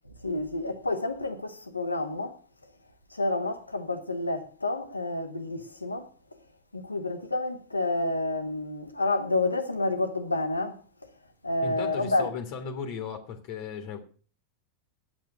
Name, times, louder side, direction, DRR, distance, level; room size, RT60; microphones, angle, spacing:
voice 1, 0.2-2.4 3.1-6.1 6.7-10.8 11.4-12.3, left 2 dB, 80° left, 1.4 m, -29 dB
voice 2, 11.6-14.0, left 6 dB, 45° left, 1.7 m, -36 dB
9.1 x 7.3 x 7.8 m
figure-of-eight pair, 90°, 0 cm